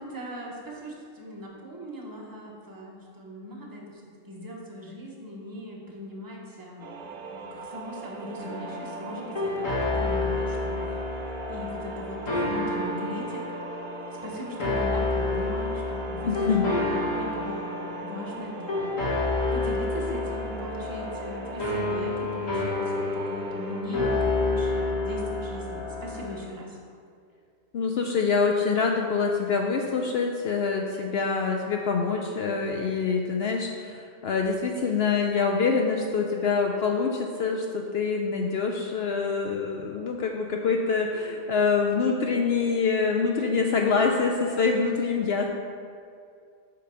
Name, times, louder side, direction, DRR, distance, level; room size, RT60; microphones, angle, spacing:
voice 1, 0.0-11.0 11.5-13.5 14.1-19.1 19.5-26.8, equal, 15° right, -3 dB, 1.1 m, -39 dB
sound 1, 6.8-23.8, right 4 dB, 55° right, 0.7 m, -41 dB
sound 2, 8.4-26.3, left 2 dB, 90° left, 2.0 m, -29 dB
voice 2, 16.3-16.7 27.7-45.5, left 5 dB, 65° left, 2 dB, 0.7 m, -25 dB
8.3 x 3.9 x 5.6 m, 2.3 s
omnidirectional pair, 1.3 m